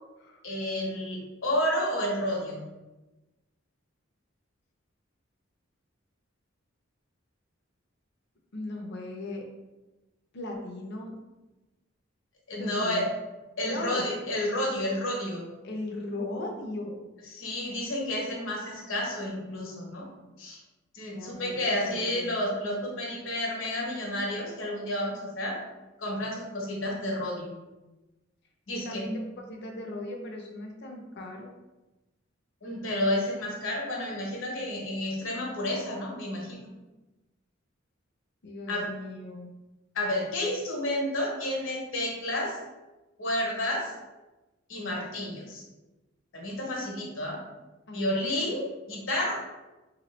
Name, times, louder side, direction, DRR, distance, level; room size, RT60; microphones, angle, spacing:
voice 1, 0.4-2.6 12.5-13.1 13.6-15.4 17.3-20.1 20.4-20.6 20.9-25.6 26.0-27.5 28.7-29.1 32.6-36.7 38.7-38.9 39.9-42.6 43.2-43.9 44.7-45.6 46.3-47.4 47.9-49.3, left 1 dB, 75° left, -1 dB, 1.0 m, -31 dB
voice 2, 8.5-9.5 10.3-11.2 12.6-13.1 13.6-14.1 15.6-17.0 21.1-22.4 28.7-29.2 29.5-31.5 38.4-39.5 47.9-48.2, left 2 dB, 60° left, 1 dB, 0.6 m, -37 dB
3.3 x 3.0 x 3.1 m, 1.1 s
head